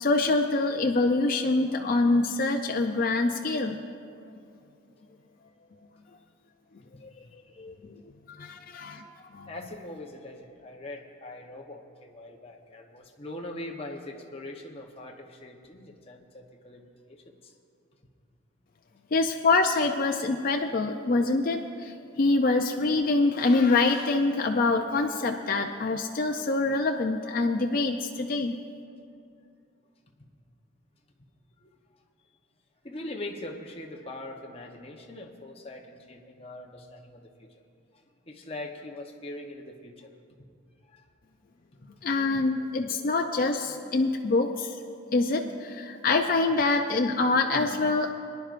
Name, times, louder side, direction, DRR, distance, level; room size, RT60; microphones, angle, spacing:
voice 1, 0.0-3.8 7.0-7.1 7.6-8.0 8.3-9.0 9.3-9.5 19.1-28.6 42.0-44.8 45.1-48.1, left 3 dB, 45° left, 3 dB, 0.4 m, -25 dB
voice 2, 7.2-7.7 9.5-17.5 31.6-31.7 32.8-37.5 38.3-40.1 40.9-41.0 41.8-41.9, left 1 dB, 30° left, 1 dB, 0.9 m, -42 dB
22.5 x 10.5 x 2.5 m, 2.4 s
head